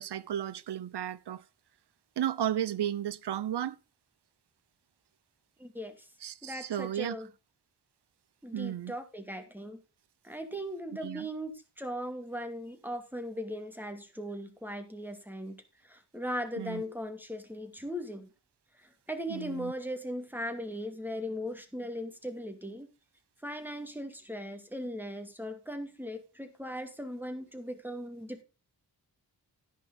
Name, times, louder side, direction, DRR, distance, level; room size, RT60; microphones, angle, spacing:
voice 1, 0.0-1.4 2.2-3.8 6.2-7.2 8.5-8.9 11.0-11.3 16.6-16.8 19.3-19.7, right 11 dB, 90° right, 0.7 m, -34 dB
voice 2, 5.6-5.9 6.4-7.3 8.4-9.8 10.2-15.6 15.9-18.3 19.1-22.9 23.4-28.4, equal, 5° right, 2.5 m, -38 dB
11.0 x 10.5 x 3.8 m
wide cardioid pair, 90°, 39 cm